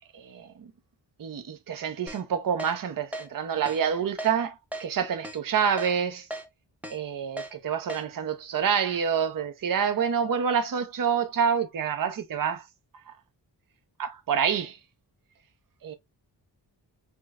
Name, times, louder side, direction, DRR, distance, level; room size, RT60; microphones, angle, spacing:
voice 1, 0.1-0.7 1.2-6.3 6.9-12.6 13.1-13.2 14.0-14.8 15.8-15.9, right 7 dB, 50° right, 0.6 m, -27 dB
Keyboard (musical), 2.1-2.2 2.6-2.7 3.1-3.3 3.7-3.8 4.2-4.3 4.7-4.9 5.2-5.4 5.8-5.9 6.3-6.4 6.8-7.0 7.4-7.5 7.9-8.0, right 1 dB, 5° right, 0.6 m, -36 dB
4.3 x 2.2 x 2.3 m
cardioid pair, 65°, 43 cm